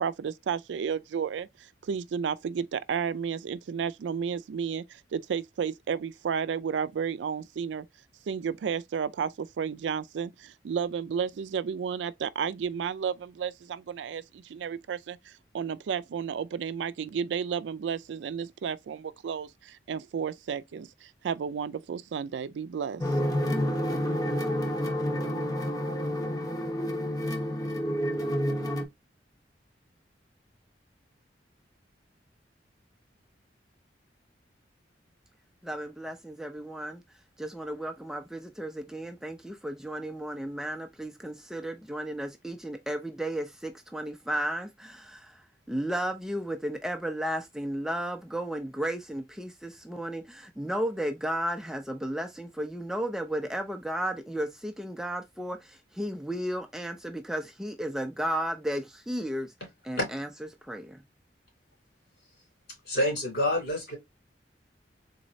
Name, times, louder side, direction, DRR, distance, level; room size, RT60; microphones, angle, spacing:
voice 1, 0.0-7.9 8.3-23.0, right 7 dB, 85° right, 0.3 m, -32 dB
sound 1, 23.0-28.8, equal, 20° left, 0.8 m, -29 dB
voice 2, 35.6-37.0 37.4-59.5 59.8-60.3 60.6-61.0, right 1 dB, 5° right, 0.3 m, -34 dB
voice 3, 62.9-64.0, left 1 dB, 65° left, 2.8 m, -27 dB
3.9 x 3.1 x 2.6 m
head